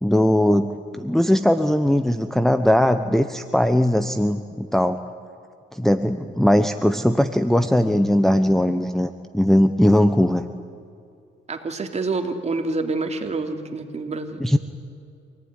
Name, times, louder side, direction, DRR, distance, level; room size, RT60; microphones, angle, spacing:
voice 1, 0.0-5.0 5.7-10.4 14.4-14.6, left 1 dB, ahead, 7 dB, 1.0 m, -19 dB
voice 2, 11.5-14.4, right 3 dB, 35° right, 4 dB, 3.1 m, -27 dB
27.5 x 18.5 x 9.9 m, 2.5 s
cardioid pair, 90°, 20 cm